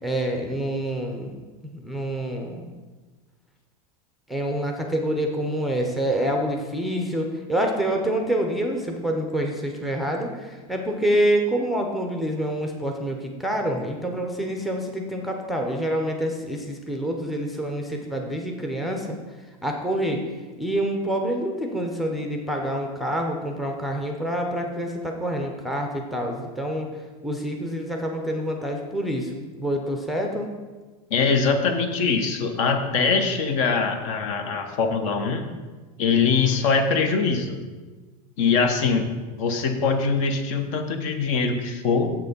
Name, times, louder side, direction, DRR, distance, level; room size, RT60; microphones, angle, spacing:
voice 1, 0.0-1.4 1.6-2.7 4.3-19.2 19.6-20.2 20.6-26.9 27.2-30.5, right 1 dB, ahead, 2 dB, 0.6 m, -27 dB
voice 2, 31.1-35.5 36.0-37.6 38.4-39.1 39.4-42.1, left 5 dB, 55° left, 6 dB, 1.1 m, -22 dB
7.5 x 6.6 x 5.2 m, 1.3 s
supercardioid pair, 155°, 19 cm